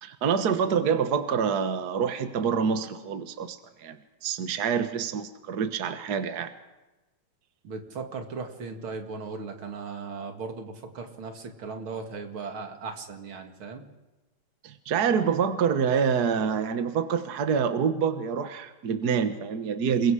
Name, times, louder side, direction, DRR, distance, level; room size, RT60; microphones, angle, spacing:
voice 1, 0.0-6.5 14.6-20.1, right 6 dB, 55° right, 9 dB, 1.7 m, -26 dB
voice 2, 7.6-13.8, right 4 dB, 90° right, 5 dB, 2.9 m, -37 dB
28.5 x 22.0 x 4.9 m, 1.1 s
omnidirectional pair, 2.2 m